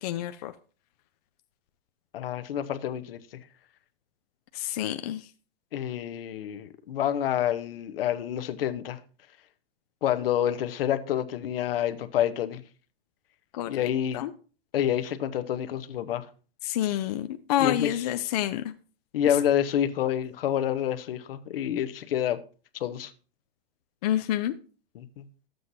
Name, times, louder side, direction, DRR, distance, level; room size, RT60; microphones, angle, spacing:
voice 1, 0.0-0.5 4.5-5.2 13.5-13.9 14.1-14.3 16.6-18.6 24.0-24.5, left 12 dB, 45° left, 0.4 m, -28 dB
voice 2, 2.1-3.4 5.7-9.0 10.0-12.6 13.7-14.2 14.7-16.3 17.6-18.0 19.1-22.4 22.7-23.1 24.9-25.2, left 10 dB, 70° left, 0.8 m, -28 dB
11.5 x 7.8 x 2.7 m
hypercardioid pair, 155°, 30 cm